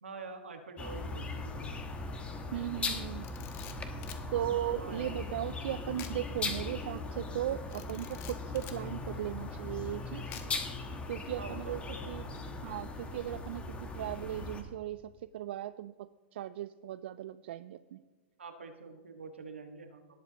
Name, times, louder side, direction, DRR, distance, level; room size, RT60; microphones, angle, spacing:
voice 1, 0.0-2.0 4.8-5.2 11.4-12.6 18.4-20.0, right 4 dB, 85° right, 5 dB, 1.6 m, -46 dB
sound 1, 0.8-14.6, left 3 dB, 20° left, 1.3 m, -39 dB
voice 2, 2.5-3.3 4.3-10.4 11.1-11.8 12.1-12.2 12.6-18.0, right 12 dB, 65° right, 14 dB, 0.4 m, -37 dB
Camera, 3.1-4.3 6.0-6.2 6.6-6.7 7.7-8.8 10.3-10.7, left 10 dB, 40° left, 1.3 m, -48 dB
18.5 x 8.1 x 3.0 m, 1.3 s
hypercardioid pair, 110°, 6 cm